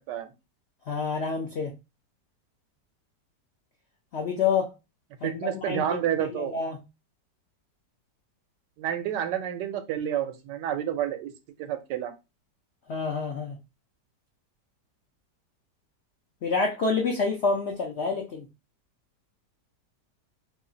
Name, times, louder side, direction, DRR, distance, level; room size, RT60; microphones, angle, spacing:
voice 1, 0.9-1.7 4.1-4.7 5.2-5.8 6.2-6.8 12.9-13.6 16.4-18.4, left 4 dB, 75° left, 0.6 m, -28 dB
voice 2, 5.2-6.5 8.8-11.3 11.6-12.1, right 10 dB, 80° right, 1.2 m, -29 dB
3.1 x 2.4 x 3.8 m
omnidirectional pair, 1.9 m